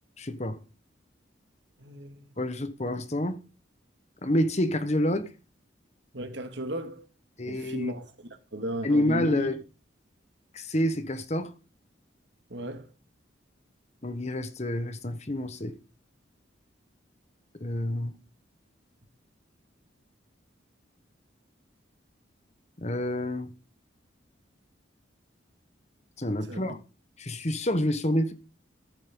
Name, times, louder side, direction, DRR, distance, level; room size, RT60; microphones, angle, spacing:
voice 1, 0.2-0.6 2.4-3.4 4.2-5.3 7.4-7.9 8.8-9.6 10.5-11.5 14.0-15.7 17.6-18.2 22.8-23.5 26.2-26.8 27.2-28.3, left 1 dB, 35° left, 1.2 m, -28 dB
voice 2, 1.8-2.2 6.1-7.0 7.5-8.1 8.5-9.5 12.5-12.8 26.5-26.8, equal, 65° right, 2.1 m, -35 dB
15.0 x 9.0 x 3.8 m
head